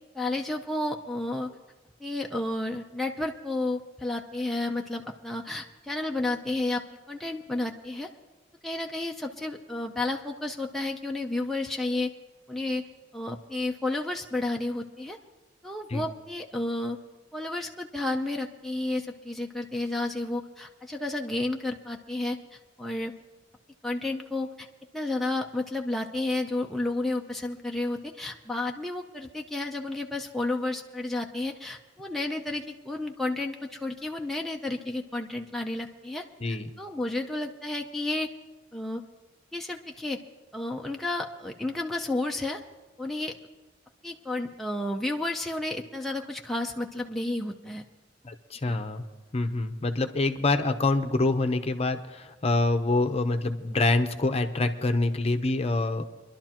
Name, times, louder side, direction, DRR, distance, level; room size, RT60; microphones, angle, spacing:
voice 1, 0.1-1.5 2.0-6.8 7.1-8.1 8.6-12.1 12.5-12.8 13.1-15.2 15.6-17.0 17.3-23.1 23.8-24.7 24.9-38.3 38.7-39.0 39.5-40.2 40.5-42.6 43.0-43.3 44.0-47.8 48.7-48.8, left 2 dB, ahead, 0 dB, 0.6 m, -31 dB
voice 2, 48.2-49.0 49.3-56.0, left 2 dB, 35° left, 7 dB, 0.8 m, -26 dB
24.5 x 11.5 x 3.0 m, 1.2 s
head